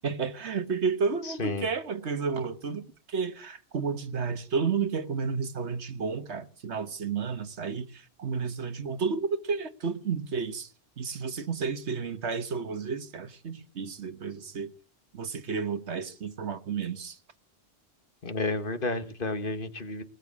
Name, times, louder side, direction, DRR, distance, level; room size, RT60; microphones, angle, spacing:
voice 1, 0.0-2.8 3.1-10.7 11.0-14.7 15.1-17.2, right 5 dB, 75° right, 1.5 m, -31 dB
voice 2, 1.2-1.7 18.2-20.0, left 2 dB, 50° left, 1.6 m, -31 dB
20.0 x 8.3 x 8.5 m
omnidirectional pair, 1.1 m